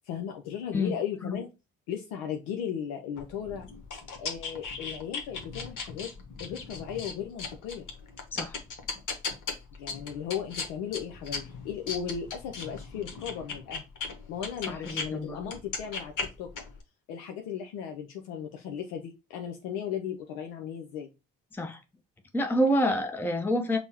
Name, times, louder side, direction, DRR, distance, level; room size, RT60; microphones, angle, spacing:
voice 1, 0.1-1.5 1.9-3.7 4.2-6.1 6.4-7.9 9.8-13.8 14.3-16.1 16.4-16.5 17.1-21.1, left 8 dB, 70° left, 0.6 m, -36 dB
sound 1, 3.2-15.1 15.4-16.8, left 4 dB, 50° left, 1.1 m, -37 dB
voice 2, 14.8-15.4 21.5-21.8 22.3-23.8, equal, 5° left, 0.6 m, -27 dB
5.3 x 2.1 x 2.8 m
hypercardioid pair, 45°, 39 cm